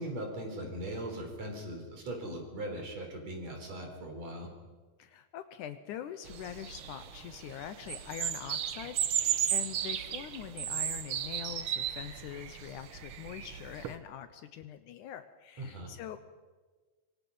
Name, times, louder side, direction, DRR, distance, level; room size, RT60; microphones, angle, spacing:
voice 1, 0.0-4.5 15.6-15.9, right 1 dB, 50° right, 3 dB, 5.1 m, -39 dB
voice 2, 5.0-16.2, left 10 dB, 75° left, 10 dB, 2.2 m, -44 dB
sound 1, 6.3-14.0, right 10 dB, 85° right, 1.2 m, -35 dB
25.5 x 24.0 x 5.5 m, 1.3 s
omnidirectional pair, 3.9 m